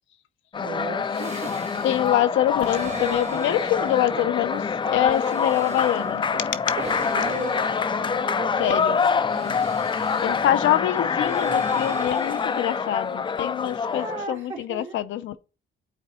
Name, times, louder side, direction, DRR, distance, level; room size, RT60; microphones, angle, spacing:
sound 1, 0.5-14.3, left 6 dB, 25° left, 0.3 m, -26 dB
voice 1, 0.6-1.6 7.1-7.6 8.2-9.0 9.3-9.6 10.2-10.5 13.9-15.0, right 4 dB, 80° right, 2.2 m, -36 dB
sound 2, 1.1-2.2 2.6-4.6 5.0-6.3 6.7-8.7 9.3-10.7 11.2-13.3, right 4 dB, 35° right, 1.3 m, -40 dB
voice 2, 1.8-6.2 8.6-9.0 10.2-15.4, left 12 dB, 75° left, 0.5 m, -25 dB
sound 3, 3.4-10.9 11.2-11.4, right 5 dB, 50° right, 1.6 m, -41 dB
8.9 x 3.8 x 3.0 m
cardioid pair, 90°, 20 cm